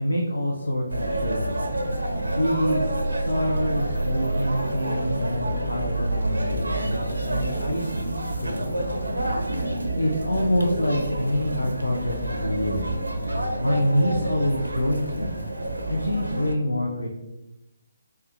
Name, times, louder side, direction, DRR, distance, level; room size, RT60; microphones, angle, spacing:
voice 1, 0.0-1.4 2.3-8.2 8.4-8.7 10.0-12.9 13.6-15.3 15.9-17.1, equal, 85° left, -1 dB, 0.5 m, -26 dB
sound 1, 0.9-16.5, right 1 dB, 90° right, 0.4 m, -28 dB
3.4 x 2.2 x 2.8 m, 0.96 s
figure-of-eight pair, 145°, 0 cm